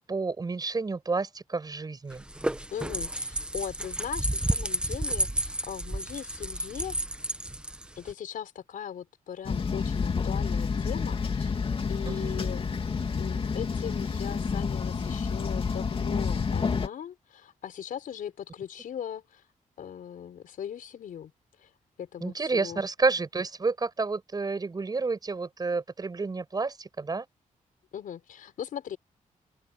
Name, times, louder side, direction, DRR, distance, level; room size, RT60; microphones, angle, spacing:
voice 1, 0.1-2.2 12.0-12.5 22.2-27.3, right 4 dB, 30° right, 6.7 m, -30 dB
sound 1, 2.1-8.1, right 1 dB, 5° right, 1.0 m, -31 dB
voice 2, 2.7-7.0 8.0-11.5 11.9-12.6 13.2-19.4 19.8-21.3 21.6-21.7 22.0-22.8 27.9-29.0, left 9 dB, 85° left, 4.3 m, -39 dB
sound 2, 9.4-16.9, left 5 dB, 40° left, 2.7 m, -29 dB
open air
wide cardioid pair, 140°, 14 cm